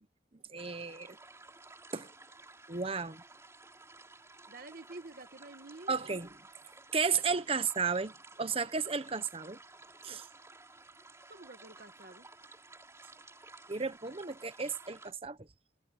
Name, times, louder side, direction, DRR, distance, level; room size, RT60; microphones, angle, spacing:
voice 1, 0.5-1.2 1.9-2.1 2.7-3.2 5.9-6.3 6.9-9.6 10.0-10.3 13.7-15.4, right 5 dB, 30° right, 1.0 m, -33 dB
sound 1, 0.6-15.1, right 3 dB, 15° right, 3.9 m, -55 dB
voice 2, 4.5-6.1 11.3-12.3, right 2 dB, 50° right, 1.5 m, -49 dB
head